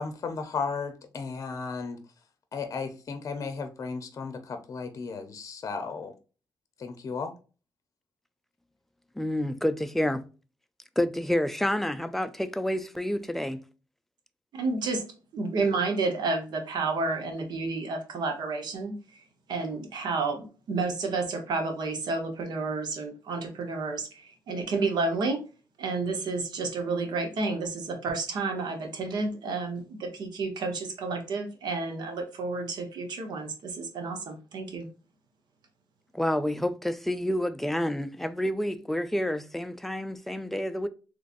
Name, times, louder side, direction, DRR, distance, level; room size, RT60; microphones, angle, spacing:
voice 1, 0.0-2.0 2.5-6.1 6.8-7.3, left 5 dB, 45° left, 0.6 m, -34 dB
voice 2, 9.2-10.2 11.0-13.6 36.1-40.9, left 1 dB, 5° left, 0.3 m, -29 dB
voice 3, 14.5-15.0 15.3-19.0 19.5-25.4 25.8-34.9, right 3 dB, 80° right, 1.0 m, -30 dB
3.8 x 3.1 x 2.5 m
cardioid pair, 130°, 7 cm